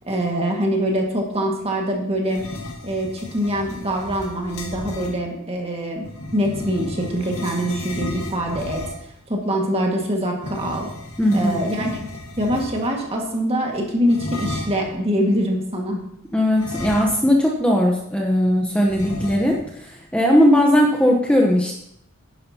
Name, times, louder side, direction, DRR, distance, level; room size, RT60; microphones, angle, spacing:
voice 1, 0.1-2.4 2.8-6.1 6.3-8.8 9.3-10.9 11.3-16.0, equal, 25° right, 0 dB, 1.8 m, -24 dB
sound 1, 2.2-5.2 6.0-9.2 10.4-13.0 14.1-14.9 16.6-17.5 17.8-17.9 18.9-19.7, left 2 dB, 75° left, 1.5 m, -34 dB
voice 2, 11.2-11.6 16.3-21.7, equal, 5° left, -1 dB, 0.9 m, -18 dB
11.0 x 10.5 x 2.9 m, 0.75 s
head